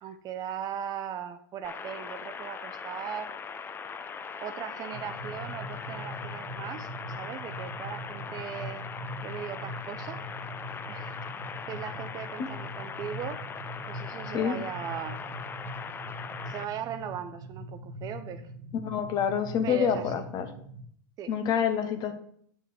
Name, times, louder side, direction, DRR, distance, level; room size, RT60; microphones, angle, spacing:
voice 1, 0.0-3.3 4.4-6.9 7.2-8.8 9.2-10.2 10.9-11.2 11.7-13.4 13.9-15.2 16.5-18.5 19.6-20.2 21.2-21.3, right 9 dB, 35° right, 10 dB, 0.5 m, -38 dB
sound 1, 1.6-16.6, left 6 dB, 20° left, 0.5 m, -40 dB
sound 2, 4.9-20.8, equal, 80° right, 1.0 m, -42 dB
voice 2, 18.8-20.5 21.3-22.1, left 8 dB, 40° left, 9 dB, 0.9 m, -27 dB
8.2 x 5.7 x 3.2 m, 0.63 s
hypercardioid pair, 110°, 11 cm